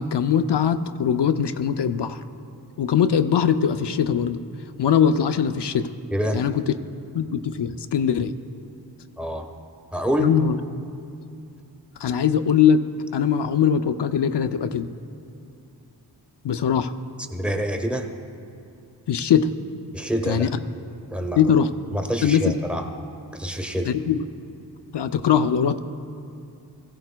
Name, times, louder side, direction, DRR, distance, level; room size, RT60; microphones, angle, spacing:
voice 1, 0.0-2.2 2.8-4.4 4.8-5.9 6.3-6.6 7.1-8.3 10.2-10.6 12.0-12.8 13.1-14.9 16.4-16.9 19.1-19.5 20.3-20.5 21.4-21.7 22.2-22.6 23.9-24.2 24.9-25.8, left 8 dB, 65° left, 9 dB, 0.5 m, -21 dB
voice 2, 6.1-6.4 9.2-9.5 9.9-10.3 17.3-18.1 19.9-20.5 21.1-21.4 21.9-22.8 23.3-23.9, equal, 5° right, 4 dB, 1.1 m, -26 dB
17.5 x 16.0 x 2.2 m, 2.5 s
wide cardioid pair, 70°, 44 cm